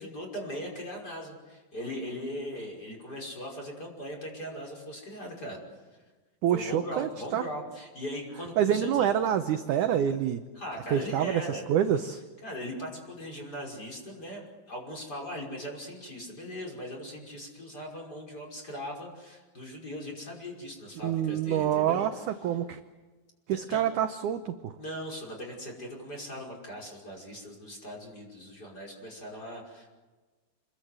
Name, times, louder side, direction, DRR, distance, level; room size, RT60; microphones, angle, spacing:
voice 1, 0.0-5.6 6.5-8.9 10.6-11.7 12.4-22.1 23.5-23.8 24.8-30.0, equal, 25° left, 0 dB, 5.8 m, -39 dB
voice 2, 6.4-7.4 8.6-10.4 10.9-12.2 21.0-22.8 23.5-24.7, right 10 dB, 75° right, 8 dB, 1.8 m, -27 dB
27.5 x 21.5 x 8.0 m, 1.3 s
omnidirectional pair, 4.7 m